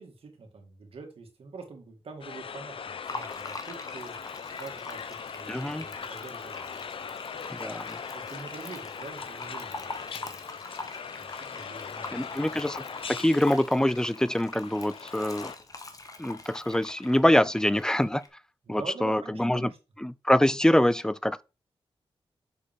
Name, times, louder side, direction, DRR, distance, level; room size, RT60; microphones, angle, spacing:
voice 1, 0.0-4.2 4.6-6.7 7.2-7.5 8.1-9.8 10.1-10.4 11.1-12.5 18.6-19.8, right 4 dB, 75° right, 2.0 m, -45 dB
sound 1, 2.2-15.6, left 6 dB, 65° left, 0.6 m, -40 dB
Fill (with liquid), 3.1-18.3, left 3 dB, 35° left, 1.1 m, -43 dB
voice 2, 5.5-5.9 7.5-8.0 12.1-15.5 16.2-18.2 18.7-19.7 20.0-21.4, left 1 dB, 5° left, 0.4 m, -25 dB
6.8 x 4.9 x 3.6 m
cardioid pair, 75°, 10 cm